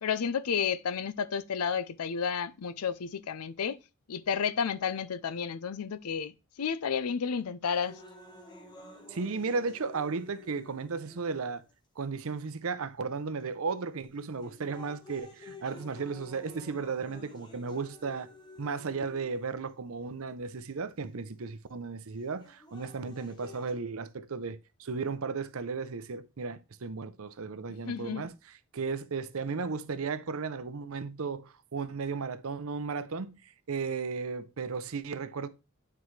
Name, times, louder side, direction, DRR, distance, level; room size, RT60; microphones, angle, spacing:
voice 1, 0.0-3.8 4.1-6.3 6.6-8.0 27.9-28.3, left 6 dB, 85° left, 0.5 m, -31 dB
sound 1, 7.7-11.7 12.5-12.6 13.4-13.7 14.2-19.7 20.7-20.8 22.2-23.7, left 2 dB, 20° left, 1.1 m, -51 dB
voice 2, 9.1-11.6 12.0-18.3 18.6-28.3 28.7-35.5, right 4 dB, 70° right, 0.6 m, -35 dB
9.4 x 4.6 x 3.2 m
head